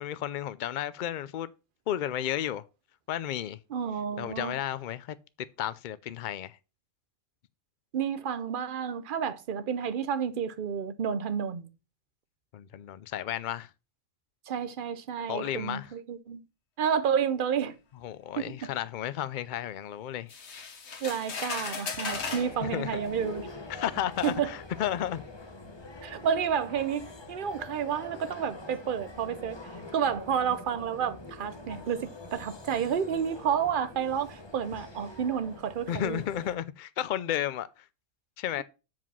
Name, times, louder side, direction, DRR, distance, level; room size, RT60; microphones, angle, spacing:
voice 1, 0.0-1.5 1.9-2.6 3.1-3.6 4.2-5.2 5.6-6.6 12.5-13.7 15.3-15.9 18.0-20.4 22.6-23.0 23.7-25.2 35.9-37.8 38.4-38.6, left 11 dB, 85° left, 0.4 m, -33 dB
voice 2, 3.7-4.6 7.9-11.7 14.5-16.4 16.8-17.7 18.4-18.7 21.0-23.5 24.2-24.5 26.0-29.6 29.9-36.2, right 7 dB, 50° right, 0.8 m, -30 dB
sound 1, 20.3-22.5 23.5-23.6 24.2-24.4, left 5 dB, 55° left, 1.4 m, -36 dB
sound 2, 22.1-36.6, left 2 dB, 25° left, 0.9 m, -44 dB
7.6 x 5.0 x 5.5 m
omnidirectional pair, 1.4 m